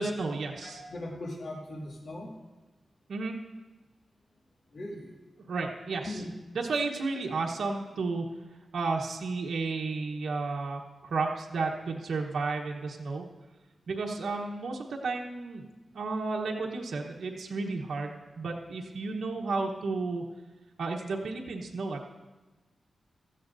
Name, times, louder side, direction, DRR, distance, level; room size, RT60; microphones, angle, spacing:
voice 1, 0.0-0.8 3.1-3.4 5.5-6.2 6.5-8.2 8.7-13.3 13.9-15.6 15.9-20.2 20.8-22.1, right 3 dB, 80° right, 0 dB, 1.1 m, -32 dB
voice 2, 0.6-2.3 4.7-5.1 6.1-6.3, left 1 dB, 55° left, -2 dB, 2.4 m, -39 dB
16.5 x 13.5 x 2.7 m, 1.2 s
wide cardioid pair, 140°, 0 cm